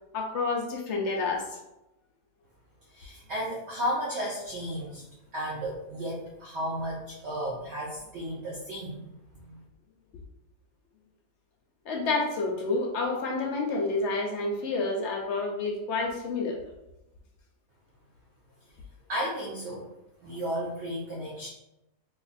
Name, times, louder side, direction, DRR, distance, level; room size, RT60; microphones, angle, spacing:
voice 1, 0.1-1.6 11.9-16.6, left 3 dB, 70° left, 0 dB, 0.7 m, -29 dB
voice 2, 2.9-5.0 5.3-9.1 9.4-9.6 19.1-19.9 20.2-21.5, equal, 60° right, -4 dB, 0.7 m, -33 dB
2.6 x 2.4 x 3.9 m, 0.93 s
omnidirectional pair, 1.7 m